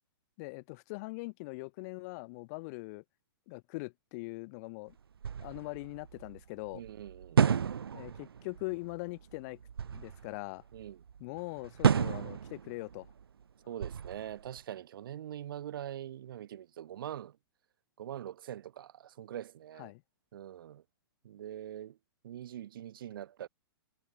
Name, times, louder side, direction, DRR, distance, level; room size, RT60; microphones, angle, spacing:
voice 1, 0.4-3.0 3.5-4.9 5.4-6.8 7.9-9.6 9.9-10.6 11.2-13.1 19.8-20.0, left 27 dB, 45° left, 5.3 m, -41 dB
sound 1, 4.9-5.0 5.2-13.4 13.8-14.6, right 7 dB, 80° right, 3.2 m, -32 dB
voice 2, 6.7-7.4 10.7-11.0 13.7-17.4 18.0-19.9 20.3-20.8 21.2-22.0 22.2-23.5, right 11 dB, 65° right, 2.5 m, -43 dB
hypercardioid pair, 125°, 12 cm